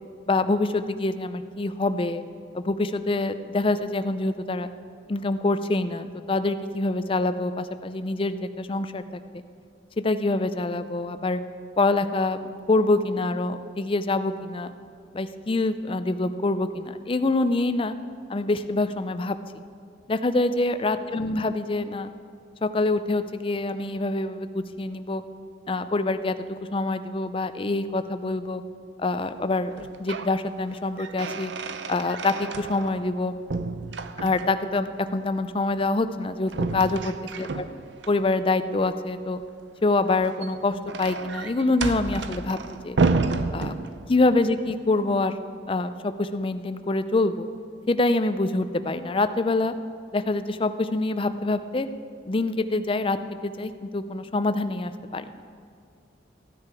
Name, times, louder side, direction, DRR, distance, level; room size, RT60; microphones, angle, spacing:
voice 1, 0.3-2.2 2.5-4.7 5.1-9.2 10.0-11.4 11.8-12.4 12.7-14.7 15.1-17.9 18.3-19.4 20.1-22.1 22.6-25.2 25.7-26.3 26.7-28.6 29.0-29.7 30.0-31.5 31.9-33.3 34.2-37.7 38.1-39.4 39.8-42.6 42.8-43.0 43.5-43.7 44.1-45.3 45.7-47.5 47.9-49.7 50.1-51.9 52.3-53.2 53.4-55.3, left 2 dB, 30° left, 11 dB, 0.5 m, -25 dB
sound 1, 29.7-30.4 30.7-33.2 33.5-34.7 36.5-38.1 40.1-44.3, right 3 dB, 75° right, 0.6 m, -30 dB
15.0 x 9.6 x 4.8 m, 2.4 s
head